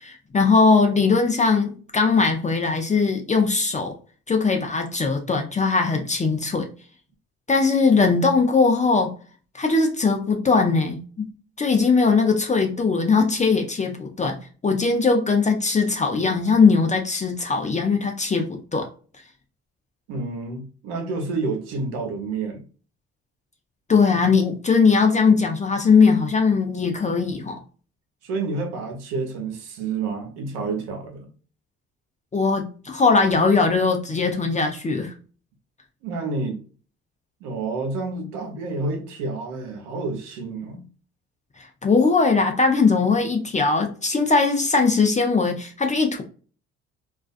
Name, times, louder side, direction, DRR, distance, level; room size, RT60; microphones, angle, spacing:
voice 1, 0.0-3.9 4.3-6.7 7.5-9.1 9.5-11.3 11.6-14.4 14.6-18.9 23.9-27.6 32.3-35.1 41.8-46.2, left 4 dB, 20° left, 0.5 m, -20 dB
voice 2, 20.1-22.6 28.2-31.3 36.0-36.6 37.4-40.8, right 3 dB, 85° right, 0.7 m, -29 dB
2.4 x 2.2 x 2.4 m
hypercardioid pair, 60°, 33 cm